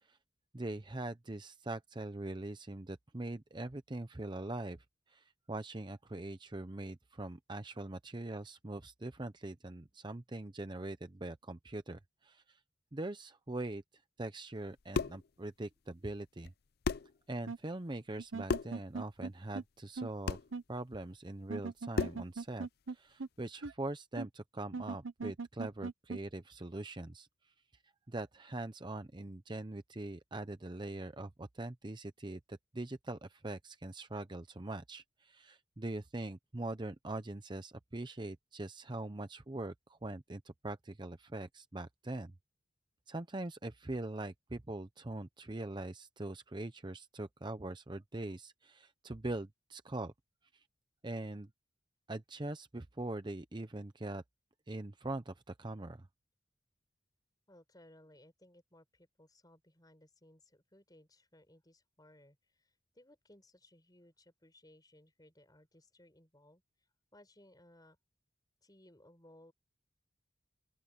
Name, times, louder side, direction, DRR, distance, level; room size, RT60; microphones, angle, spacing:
voice 1, 0.5-4.8 5.1-12.6 12.9-13.8 14.2-16.5 17.3-20.4 20.7-27.3 28.1-42.3 43.1-50.1 50.5-50.6 51.0-51.5 52.1-54.2 54.7-56.1, right 2 dB, 25° right, 0.7 m, -42 dB
sound 1, 14.7-15.3 16.4-16.5 16.8-17.2 18.5-18.8 20.3-20.5 21.9-22.3, left 4 dB, 55° left, 0.5 m, -34 dB
sound 2, 17.5-17.6 18.2-19.3 19.5-19.6 20.0-20.1 20.5-20.6 21.5-22.9 23.2-23.3 23.6-23.7 24.2-24.3 24.7-26.2, right 4 dB, 85° right, 0.8 m, -39 dB
voice 2, 57.5-66.6 67.1-68.0 68.6-69.5, left 1 dB, 20° left, 5.5 m, -62 dB
open air
head